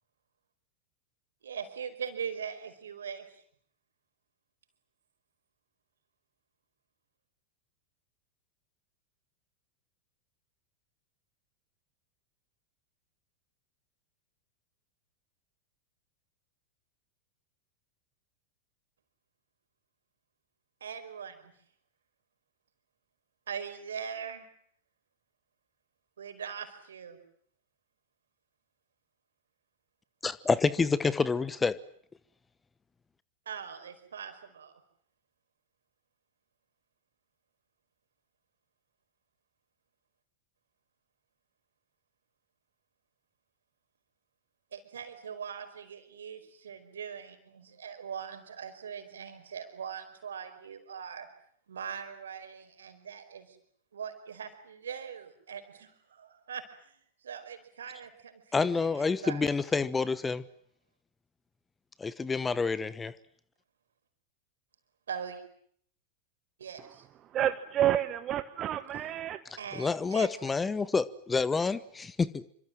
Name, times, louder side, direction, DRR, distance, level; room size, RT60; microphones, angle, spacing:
voice 1, 1.4-3.3 20.8-21.5 23.5-24.5 26.2-27.2 33.4-34.8 44.7-51.3 51.7-53.6 53.9-57.0 57.2-59.5 65.1-65.4 66.6-67.1 69.6-70.5, right 7 dB, 65° right, 8 dB, 4.9 m, -41 dB
voice 2, 30.2-31.8 58.5-60.4 62.0-63.1 69.7-72.4, left 4 dB, 15° left, 18 dB, 1.1 m, -28 dB
voice 3, 67.3-69.4, right 11 dB, 30° right, 11 dB, 1.2 m, -29 dB
27.5 x 25.5 x 7.6 m, 0.64 s
figure-of-eight pair, 90°, 0 cm